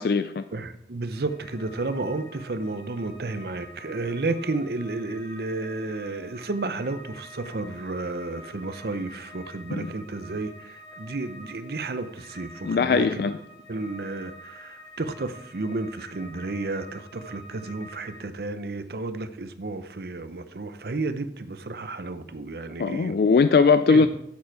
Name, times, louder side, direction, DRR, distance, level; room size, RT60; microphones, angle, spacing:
voice 1, 0.0-0.4 9.7-9.9 12.6-13.4 22.8-24.1, left 5 dB, 55° left, 11 dB, 0.3 m, -20 dB
voice 2, 0.5-13.3 13.7-23.1 23.9-24.1, right 3 dB, 65° right, 12 dB, 0.7 m, -32 dB
sound 1, 1.1-18.2, equal, 30° left, 2.4 m, -47 dB
8.7 x 7.4 x 4.7 m, 0.75 s
head